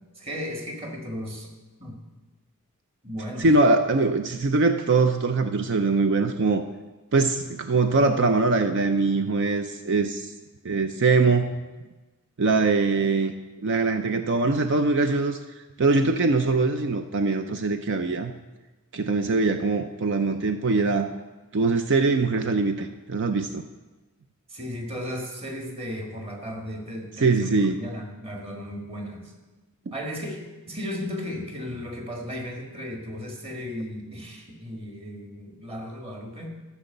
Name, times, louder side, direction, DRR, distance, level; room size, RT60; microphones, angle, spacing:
voice 1, 0.2-1.5 1.8-2.0 3.0-3.6 24.5-29.3 29.9-36.5, equal, 25° right, 1 dB, 1.8 m, -35 dB
voice 2, 3.4-6.6 7.1-10.3 10.6-11.5 12.4-13.3 13.6-15.4 15.8-18.3 18.9-21.1 21.5-23.6 27.2-27.8, right 3 dB, 55° right, 8 dB, 0.5 m, -22 dB
14.0 x 6.1 x 6.7 m, 1.2 s
head